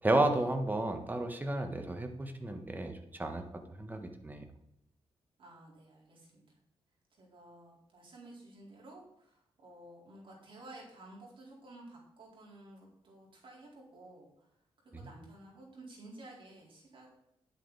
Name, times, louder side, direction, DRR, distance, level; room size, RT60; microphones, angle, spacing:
voice 1, 0.0-3.4 3.8-4.4, right 1 dB, 15° right, 5 dB, 1.5 m, -32 dB
voice 2, 5.4-6.6 7.2-14.3 14.8-17.1, right 2 dB, 55° right, -4 dB, 4.4 m, -53 dB
10.0 x 8.3 x 4.2 m, 0.81 s
cardioid pair, 95°, 10 cm